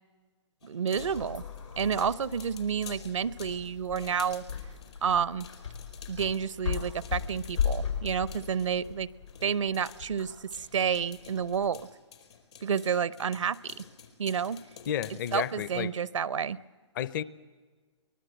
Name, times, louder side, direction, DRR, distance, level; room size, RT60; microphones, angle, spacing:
sound 1, 0.6-8.9 9.3-15.7, left 7 dB, 60° left, 4.6 m, -51 dB
voice 1, 0.6-1.4 1.8-4.4 5.0-5.5 6.1-9.1 9.4-11.9 12.6-13.8 14.2-14.6 15.3-16.6, right 7 dB, 80° right, 20 dB, 0.7 m, -30 dB
sound 2, 0.9-11.7, left 7 dB, 85° left, 5.8 m, -37 dB
voice 2, 14.9-15.9 16.9-17.2, left 10 dB, 40° left, 18 dB, 0.8 m, -32 dB
23.5 x 21.0 x 7.9 m, 1.5 s
hypercardioid pair, 135°, 16 cm